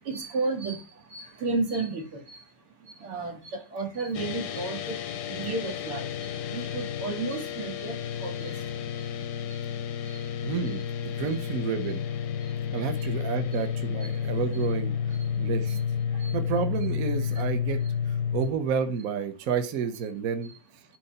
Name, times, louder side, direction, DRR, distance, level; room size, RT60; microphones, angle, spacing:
voice 1, 0.1-0.8 1.1-2.2 3.0-3.4 3.7-5.0 5.3-6.0 6.5-8.5 15.7-15.8 16.2-16.3, right 3 dB, 80° right, 3 dB, 2.9 m, -32 dB
sound 1, 4.1-18.5, left 7 dB, 65° left, 1.0 m, -31 dB
voice 2, 10.4-10.8 11.2-12.0 12.7-14.9 15.4-15.8 16.3-17.8 18.3-20.5, right 6 dB, 50° right, 7 dB, 1.2 m, -30 dB
9.7 x 4.4 x 5.6 m, 0.32 s
omnidirectional pair, 2.4 m